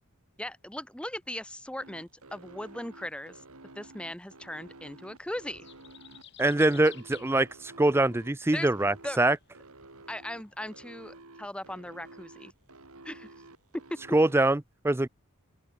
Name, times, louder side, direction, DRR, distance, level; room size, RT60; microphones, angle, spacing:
voice 1, 0.4-3.4 3.7-5.7 8.5-8.7 9.0-9.2 10.1-12.5 13.0-13.3 13.9-14.0, left 1 dB, 5° left, 0.9 m, -38 dB
sound 1, 1.8-14.4, right 2 dB, 85° right, 4.0 m, -51 dB
sound 2, 5.2-10.6, left 10 dB, 50° left, 2.3 m, -56 dB
voice 2, 6.4-9.4 14.1-15.1, right 2 dB, 10° right, 0.4 m, -24 dB
open air
head